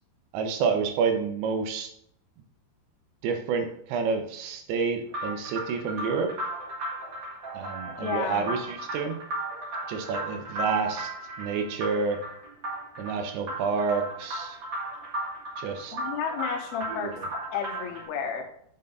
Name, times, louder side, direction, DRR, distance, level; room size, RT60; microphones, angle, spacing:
voice 1, 0.3-1.9 3.2-6.3 7.5-9.2 9.9-11.1 11.4-12.2 13.0-14.6 15.6-16.0 16.9-17.3, right 5 dB, 75° right, 6 dB, 3.1 m, -29 dB
sound 1, 5.1-18.1, right 1 dB, 60° right, 1.2 m, -36 dB
voice 2, 8.0-8.5 15.9-17.1 17.5-18.5, left 7 dB, 80° left, 3 dB, 2.5 m, -32 dB
7.7 x 5.1 x 4.0 m, 0.68 s
omnidirectional pair, 5.4 m